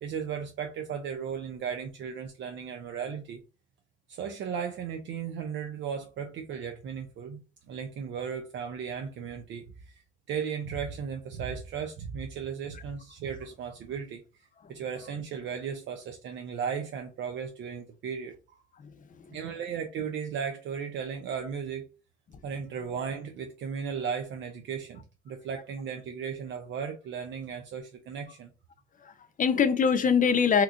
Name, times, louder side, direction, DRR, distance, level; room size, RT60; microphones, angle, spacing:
voice 1, 0.0-3.4 4.1-14.2 14.7-18.6 19.3-21.9 22.4-28.5, right 7 dB, 70° right, 0.5 m, -36 dB
voice 2, 18.8-19.4 22.3-22.4 29.0-30.6, left 6 dB, 40° left, 0.6 m, -25 dB
2.9 x 2.4 x 3.6 m
cardioid pair, 90°, 20 cm